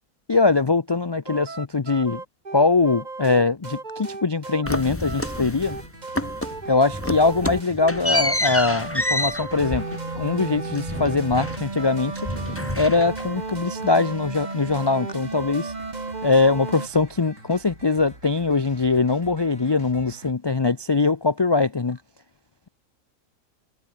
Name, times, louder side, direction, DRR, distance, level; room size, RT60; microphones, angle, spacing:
voice 1, 0.3-2.2 2.5-5.8 6.7-9.9 10.1-12.2 12.8-15.7 16.2-22.0, left 3 dB, 35° left, 0.4 m, -22 dB
sound 1, 1.3-16.9, right 3 dB, 30° right, 1.9 m, -34 dB
sound 2, 4.6-5.9 6.1-6.6 6.9-11.9 12.1-13.4, left 1 dB, 10° left, 1.7 m, -28 dB
sound 3, 5.3-20.3, right 1 dB, 60° right, 8.1 m, -46 dB
omnidirectional pair, 1.5 m